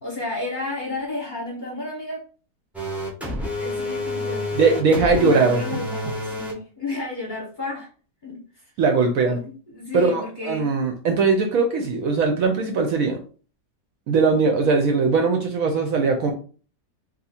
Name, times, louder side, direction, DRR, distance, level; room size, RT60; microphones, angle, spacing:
voice 1, 0.0-2.2 3.6-4.8 5.2-7.9 8.2-8.7 9.2-10.7, left 2 dB, 40° left, -3 dB, 0.8 m, -32 dB
sound 1, 2.7-6.5, left 1 dB, ahead, 0.4 m, -29 dB
voice 2, 4.5-5.8 8.8-9.4 9.9-13.2 14.1-16.3, right 4 dB, 70° right, 4 dB, 0.9 m, -20 dB
2.7 x 2.4 x 4.1 m, 0.39 s
omnidirectional pair, 1.7 m